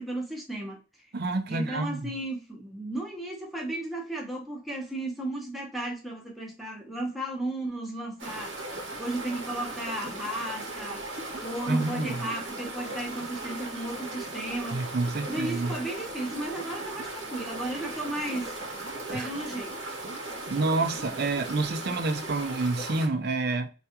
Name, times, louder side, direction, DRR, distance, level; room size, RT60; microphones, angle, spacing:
voice 1, 0.0-1.1 1.5-8.7 9.0-11.0 11.4-14.8 15.3-18.6 19.1-19.7, right 1 dB, ahead, 0.8 m, -34 dB
voice 2, 1.1-2.1 11.7-12.1 14.7-15.8 19.1-19.3 20.5-23.7, right 3 dB, 55° right, 0.5 m, -28 dB
sound 1, 8.2-23.1, right 2 dB, 70° right, 1.0 m, -37 dB
3.3 x 2.3 x 2.8 m
head